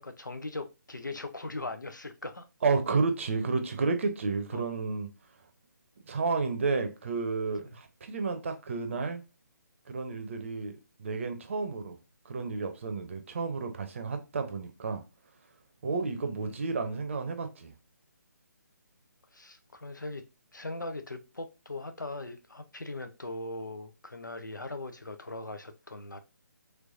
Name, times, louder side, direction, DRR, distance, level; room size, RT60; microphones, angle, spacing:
voice 1, 0.0-2.5 4.5-4.7 7.6-7.8 16.4-16.7 19.3-20.2 20.5-26.2, left 2 dB, 80° left, 0.7 m, -40 dB
voice 2, 2.6-5.1 6.1-9.2 9.9-11.9 12.2-15.0 15.8-17.7, right 4 dB, 40° right, 0.7 m, -31 dB
3.2 x 3.2 x 2.5 m
figure-of-eight pair, 145°, 10 cm